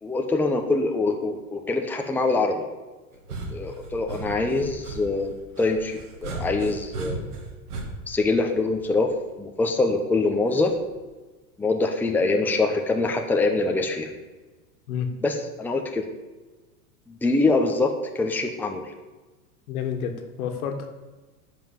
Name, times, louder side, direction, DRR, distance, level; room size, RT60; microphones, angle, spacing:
voice 1, 0.0-2.6 3.5-7.3 8.1-9.1 9.4-10.7 11.6-14.1 15.2-16.0 17.1-18.9, left 3 dB, 5° left, 3 dB, 0.9 m, -24 dB
sound 1, 3.1-9.2 10.6-11.0, right 2 dB, 90° right, 2.6 m, -36 dB
voice 2, 19.7-20.9, left 7 dB, 75° left, 6 dB, 1.8 m, -29 dB
10.5 x 6.0 x 7.4 m, 1.2 s
supercardioid pair, 130°, 44 cm